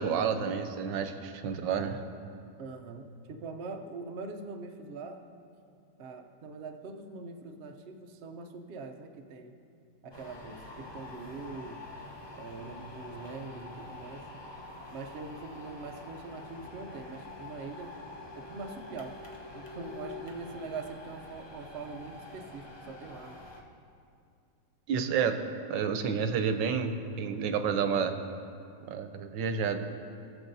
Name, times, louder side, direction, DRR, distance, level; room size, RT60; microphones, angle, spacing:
voice 1, 0.0-2.0 24.9-25.4 25.7-28.2 28.9-29.8, right 6 dB, 85° right, 8 dB, 1.3 m, -30 dB
voice 2, 2.6-5.2 6.0-9.6 10.0-11.8 12.3-14.2 14.9-17.9 18.3-19.2 19.5-23.4, right 4 dB, 65° right, 4 dB, 0.6 m, -43 dB
sound 1, 10.1-23.6, left 2 dB, 40° left, 0.3 m, -46 dB
19.5 x 7.0 x 2.6 m, 2.5 s
omnidirectional pair, 1.9 m